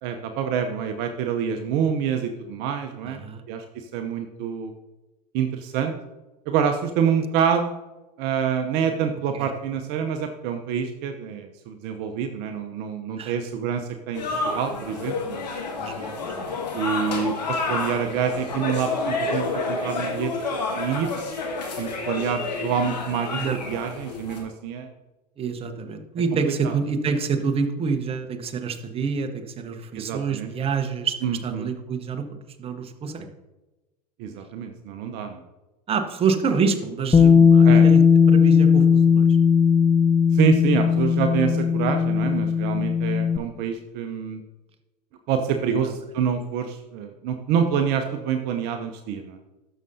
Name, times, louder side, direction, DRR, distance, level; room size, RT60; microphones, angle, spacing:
voice 1, 0.0-3.2 3.5-4.7 5.3-5.9 6.5-7.7 8.2-15.5 16.7-21.1 21.8-24.9 26.6-26.7 29.9-30.5 31.2-31.7 34.2-35.4 37.6-37.8 40.3-44.4 45.3-49.4, right 7 dB, 50° right, 6 dB, 0.8 m, -26 dB
voice 2, 3.0-3.4 9.3-9.5 13.2-13.4 15.8-16.5 23.3-23.6 25.4-33.3 35.9-38.0 38.3-39.2 45.8-45.9, right 5 dB, 30° right, 6 dB, 1.0 m, -27 dB
sound 1, 14.1-24.4, left 3 dB, 85° left, 1.9 m, -29 dB
Bass guitar, 37.1-43.4, left 6 dB, 15° left, 0.4 m, -17 dB
12.5 x 6.6 x 2.7 m, 1.1 s
hypercardioid pair, 85°, 21 cm